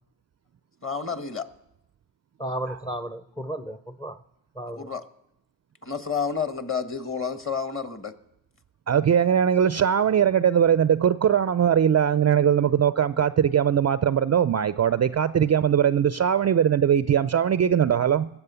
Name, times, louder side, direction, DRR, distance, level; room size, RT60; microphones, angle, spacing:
voice 1, 0.8-1.5 4.8-5.0 5.8-8.1, left 6 dB, 25° left, 9 dB, 1.5 m, -30 dB
voice 2, 2.4-4.2 4.5-4.9, right 1 dB, 10° left, 10 dB, 0.7 m, -33 dB
voice 3, 8.9-18.3, right 8 dB, 35° right, 14 dB, 0.5 m, -21 dB
20.0 x 8.1 x 6.9 m, 0.86 s
supercardioid pair, 50°, 49 cm